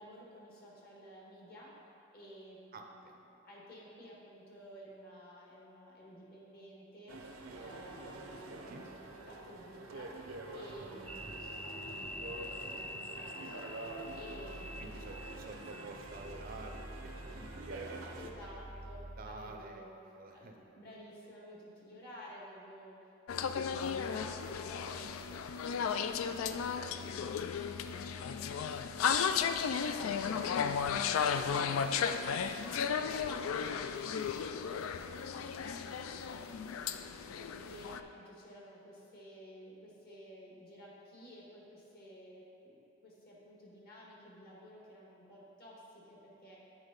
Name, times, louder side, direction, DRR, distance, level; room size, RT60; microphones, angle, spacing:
voice 1, 0.0-1.7 2.1-3.1 3.4-7.2 7.5-10.1 10.5-13.7 14.1-15.2 17.2-17.5 18.1-19.9 20.3-22.9 23.3-29.3 29.8-32.4 32.8-36.5 37.3-42.7 43.0-46.6, equal, 50° left, -4 dB, 1.6 m, -53 dB
voice 2, 2.7-3.2 8.6-8.8 14.8-18.5 19.2-19.9 20.2-20.5 37.2-37.7, right 2 dB, 45° right, 4 dB, 0.5 m, -49 dB
sound 1, 7.1-18.3, right 2 dB, 90° right, 0.7 m, -47 dB
sound 2, 11.1-19.6, equal, 5° left, 0.5 m, -47 dB
sound 3, 23.3-38.0, left 7 dB, 80° left, 0.3 m, -34 dB
8.2 x 4.4 x 5.2 m, 2.8 s
head